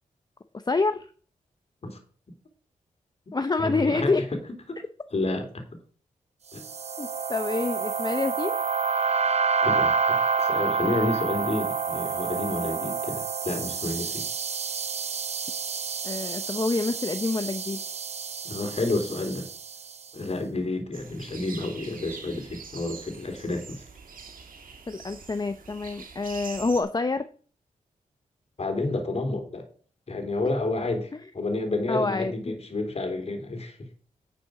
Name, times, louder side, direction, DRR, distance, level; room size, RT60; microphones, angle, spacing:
voice 1, 0.7-1.1 3.3-4.2 7.0-8.6 16.0-17.8 24.9-27.3 31.9-32.6, left 3 dB, 30° left, 10 dB, 0.7 m, -27 dB
voice 2, 3.6-4.2 4.7-4.8 5.1-5.6 6.5-6.6 9.6-14.2 18.4-19.5 20.1-23.8 28.6-29.7 30.1-33.8, left 2 dB, 45° left, 5 dB, 2.9 m, -30 dB
sound 1, 6.6-19.9, right 5 dB, 50° right, 0.8 m, -28 dB
sound 2, 20.9-26.8, right 5 dB, 75° right, 1.9 m, -44 dB
9.5 x 6.9 x 4.9 m, 0.42 s
cardioid pair, 60°, 14 cm